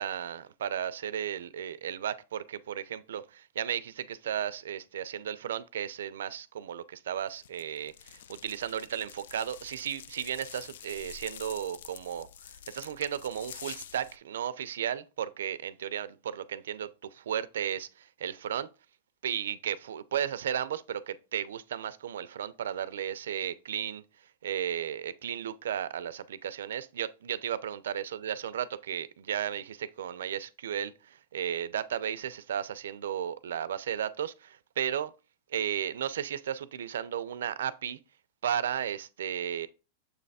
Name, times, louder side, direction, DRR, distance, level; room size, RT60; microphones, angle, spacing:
voice 1, 0.0-12.3 12.7-18.7 19.2-24.0 24.4-35.1 35.5-38.0 38.4-39.7, right 9 dB, 85° right, 0.5 m, -34 dB
sound 1, 7.4-14.2, left 9 dB, 75° left, 0.4 m, -47 dB
7.0 x 3.3 x 4.1 m
supercardioid pair, 145°, 0 cm